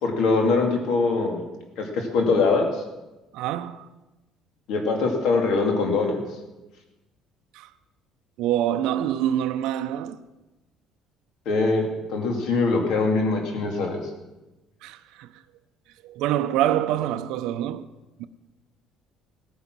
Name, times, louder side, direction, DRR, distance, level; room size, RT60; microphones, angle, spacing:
voice 1, 0.0-1.4 1.8-2.7 4.7-6.2 11.5-14.0, left 3 dB, 60° left, 2.4 m, -22 dB
voice 2, 3.3-3.8 6.6-6.7 7.5-7.7 8.4-10.2 14.8-15.3 16.0-17.9 18.2-18.3, right 11 dB, 75° right, 0.7 m, -26 dB
17.5 x 9.2 x 6.1 m
cardioid pair, 165°, 0 cm